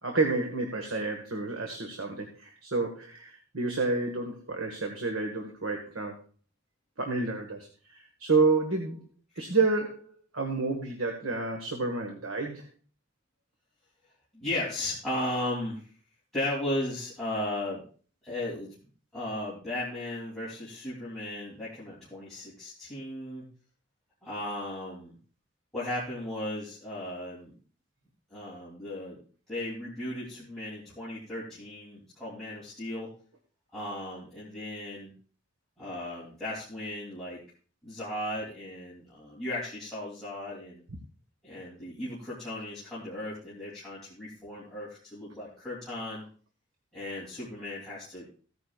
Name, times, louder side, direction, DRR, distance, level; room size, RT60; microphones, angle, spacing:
voice 1, 0.0-6.2 7.0-9.0 9.3-12.7, right 3 dB, 85° right, 3 dB, 1.6 m, -29 dB
voice 2, 14.3-15.8 16.3-17.8 18.2-18.7 19.1-23.5 24.2-25.1 25.7-27.5 28.3-29.2 29.5-33.1 33.7-35.1 35.8-37.4 37.8-40.8 41.4-46.2 46.9-48.3, left 1 dB, ahead, -10 dB, 3.0 m, -36 dB
15.5 x 9.6 x 2.4 m, 0.40 s
head